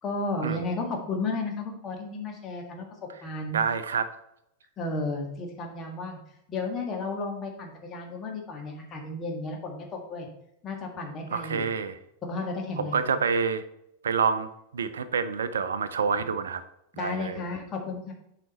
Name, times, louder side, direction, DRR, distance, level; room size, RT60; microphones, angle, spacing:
voice 1, 0.0-2.9 3.2-3.6 4.8-6.2 6.5-10.3 10.6-11.7 12.2-13.1 16.9-18.1, left 3 dB, 25° left, 1 dB, 1.7 m, -33 dB
voice 2, 3.5-4.1 11.3-12.0 12.8-13.6 14.0-14.5 14.7-16.6 17.0-17.4, right 6 dB, 65° right, 12 dB, 0.5 m, -27 dB
7.6 x 5.0 x 4.2 m, 0.81 s
figure-of-eight pair, 90°, 0 cm